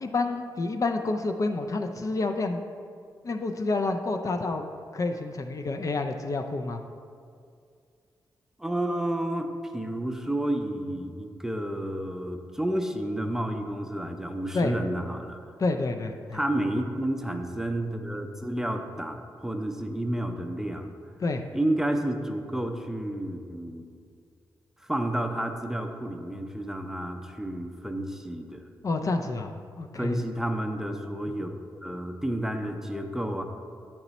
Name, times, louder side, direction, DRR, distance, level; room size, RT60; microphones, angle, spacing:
voice 1, 0.0-2.6 3.2-4.6 4.9-6.8 14.5-14.7 15.6-16.4 21.2-21.4 28.8-29.5 29.8-30.2, left 3 dB, 45° left, 5 dB, 0.4 m, -28 dB
voice 2, 8.6-15.4 16.3-20.9 21.5-23.9 24.8-28.7 30.0-33.4, right 1 dB, 5° right, 4 dB, 0.5 m, -30 dB
8.8 x 3.0 x 4.1 m, 2.3 s
cardioid pair, 65°, 8 cm